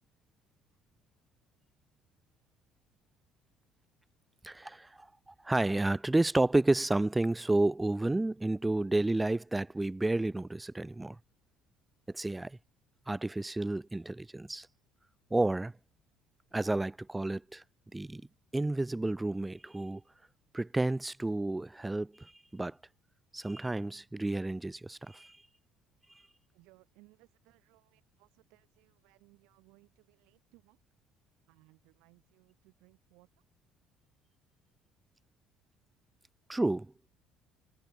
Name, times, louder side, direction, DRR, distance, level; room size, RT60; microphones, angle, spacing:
voice 1, 4.4-5.1 5.4-11.2 12.1-12.6 13.1-14.7 15.3-15.7 16.5-17.6 17.9-18.2 18.5-20.0 20.5-22.8 23.3-25.4 36.5-36.9, right 2 dB, 10° right, 0.5 m, -31 dB
voice 2, 26.5-30.8 31.5-33.5, right 25 dB, 65° right, 7.2 m, -64 dB
figure-of-eight pair, 55°, 0 cm